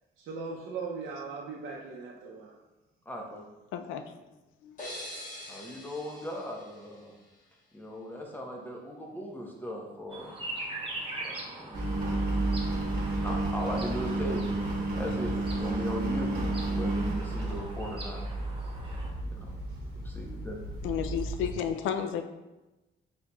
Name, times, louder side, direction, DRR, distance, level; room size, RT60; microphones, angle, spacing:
voice 1, 0.2-2.6, right 4 dB, 75° right, -3 dB, 0.6 m, -39 dB
voice 2, 3.1-3.5 5.5-7.1 7.7-10.4 11.2-11.8 13.2-16.3 16.7-18.2 19.2-19.5 20.0-20.6, equal, 10° left, -1 dB, 0.9 m, -38 dB
voice 3, 3.7-4.0 4.6-4.8 20.8-22.2, left 8 dB, 85° left, 8 dB, 0.4 m, -32 dB
sound 1, 4.8-7.5, left 1 dB, 40° left, 1.4 m, -44 dB
sound 2, 10.1-19.1, right 2 dB, 25° right, 0.9 m, -42 dB
Engine, 11.7-21.5, right 2 dB, 50° right, 1.2 m, -31 dB
4.5 x 4.2 x 2.3 m, 1.1 s
cardioid pair, 90°, 20 cm